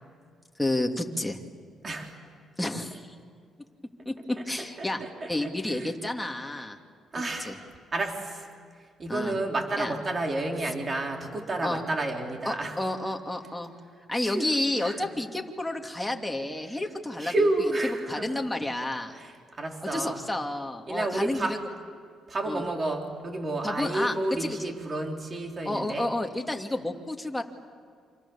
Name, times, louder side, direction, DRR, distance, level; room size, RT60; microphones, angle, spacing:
voice 1, 0.6-1.4 2.6-3.1 4.0-5.0 5.3-6.8 7.4-7.6 9.1-9.4 9.8-9.9 11.6-11.8 12.5-13.7 14.1-17.5 18.1-19.2 19.9-21.6 22.5-22.6 23.6-24.7 25.6-27.4, left 1 dB, 5° left, 2 dB, 2.6 m, -30 dB
voice 2, 1.8-2.2 2.9-3.0 4.3-6.0 7.1-7.7 7.9-8.5 9.0-12.8 14.2-15.2 16.6-16.9 17.2-18.5 19.1-20.2 20.9-21.6 22.3-26.1, right 2 dB, 35° right, 2 dB, 3.9 m, -31 dB
29.5 x 26.5 x 7.3 m, 2.1 s
cardioid pair, 95°, 0 cm